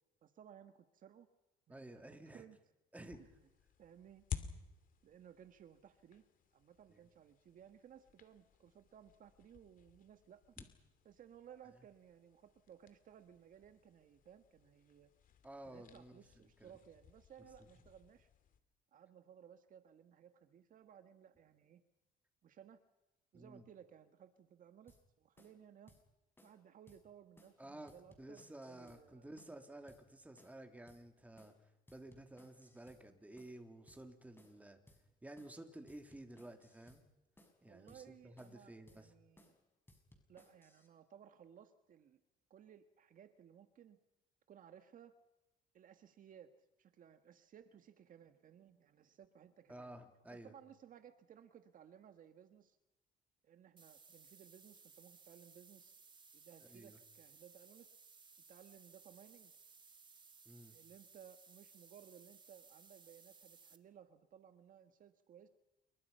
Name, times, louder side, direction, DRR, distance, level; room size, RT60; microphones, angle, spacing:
voice 1, 0.2-1.3 1.7-2.6 3.2-3.3 3.8-4.2 5.0-6.2 6.5-10.5 11.0-15.1 15.7-18.3 18.9-21.8 22.4-22.8 23.3-25.9 26.4-29.3 37.6-39.5 40.3-42.2 42.5-44.0 44.5-45.1 45.7-49.9 50.3-52.8 53.4-55.9 56.3-57.9 58.5-59.5 60.7-65.5, right 9 dB, 55° right, 9 dB, 1.7 m, -60 dB
voice 2, 1.7-2.4 2.9-3.3 10.6-10.7 15.4-16.7 23.3-23.6 27.6-27.9 28.2-34.8 35.2-37.0 37.6-39.1 49.7-50.5 56.7-57.0 60.4-60.8, right 1 dB, 10° right, 5 dB, 3.4 m, -53 dB
sound 1, 3.0-18.6, left 8 dB, 55° left, 2.7 m, -54 dB
sound 2, 24.9-25.0 25.4-25.6 25.9-26.0 26.4-26.6 26.9-27.0 27.4-27.6 27.9-29.0 29.4-29.6 29.9-30.0 30.4-30.6 30.9-31.0 31.4-31.6 31.9-33.0 33.4-33.6 33.9-34.0 34.4-34.6 34.9-35.0 35.4-35.6 35.9-37.0 37.4-37.6 37.9-38.0 38.4-38.6 38.9-39.0 39.4-39.6 39.9-40.9, left 1 dB, 15° left, 6.3 m, -66 dB
sound 3, 53.8-63.8, right 5 dB, 25° right, 2.1 m, -62 dB
29.0 x 24.0 x 5.7 m, 1.0 s
cardioid pair, 110°, 17 cm